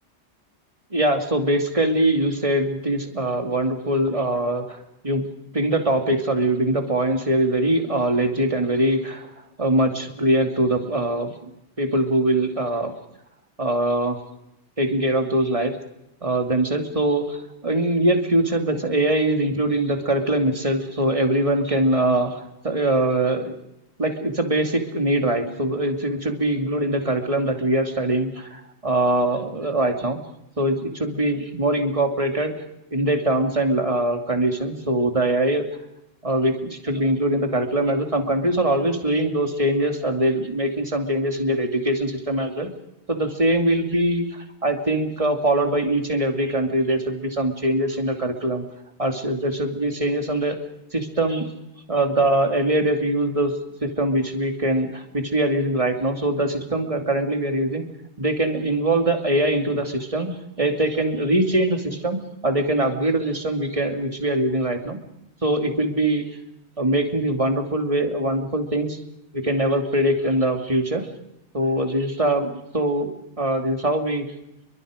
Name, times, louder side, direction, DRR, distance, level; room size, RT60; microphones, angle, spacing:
voice 1, 0.9-4.8 5.0-5.2 5.5-9.3 9.6-11.5 11.8-12.9 13.6-14.2 14.8-15.8 16.2-23.5 24.0-30.2 30.6-32.5 32.9-35.6 36.2-42.7 43.1-48.6 49.0-50.6 50.9-51.5 51.9-53.5 53.8-57.8 58.2-60.3 60.6-65.0 65.4-66.2 66.8-69.0 69.3-71.1 71.5-73.1 73.4-74.3, right 1 dB, 30° right, 5 dB, 2.7 m, -22 dB
29.0 x 23.5 x 5.1 m, 0.83 s
omnidirectional pair, 1.2 m